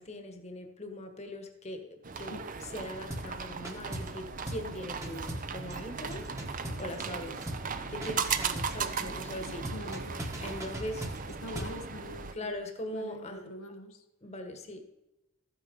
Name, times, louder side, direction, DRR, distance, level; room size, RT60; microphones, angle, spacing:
voice 1, 0.0-2.3 2.6-7.5 7.9-9.7 10.4-11.1 12.3-13.5 14.2-14.9, left 1 dB, 35° left, 5 dB, 1.3 m, -41 dB
sound 1, 2.0-12.3, right 5 dB, 40° right, 0.6 m, -37 dB
sound 2, 3.1-3.4 3.6-4.2 4.5-4.7 5.0-7.2 7.5-7.7 8.0-8.8 9.6-11.8, equal, 15° right, 1.2 m, -39 dB
voice 2, 9.0-10.6 11.3-14.0, left 1 dB, 85° left, 4 dB, 1.2 m, -45 dB
14.0 x 9.0 x 5.2 m, 0.97 s
head